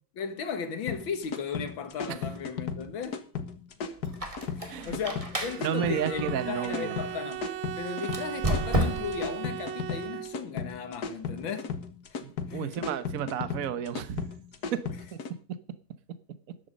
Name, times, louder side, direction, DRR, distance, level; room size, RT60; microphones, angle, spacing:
voice 1, 0.2-3.2 4.6-7.4 7.8-11.8 12.1-12.2 12.5-12.8 14.9-15.0, left 6 dB, 75° left, 2.3 m, -36 dB
sound 1, 0.9-15.3, left 6 dB, 55° left, 1.8 m, -35 dB
Squeak, 4.0-7.2 8.0-9.3, right 1 dB, 15° right, 2.0 m, -32 dB
voice 2, 4.6-5.0 5.6-7.0 12.2-14.3 14.7-14.8 15.1-15.2, right 8 dB, 50° right, 1.3 m, -32 dB
Bowed string instrument, 5.4-10.7, right 12 dB, 75° right, 1.5 m, -38 dB
13.5 x 10.5 x 5.3 m
omnidirectional pair, 2.2 m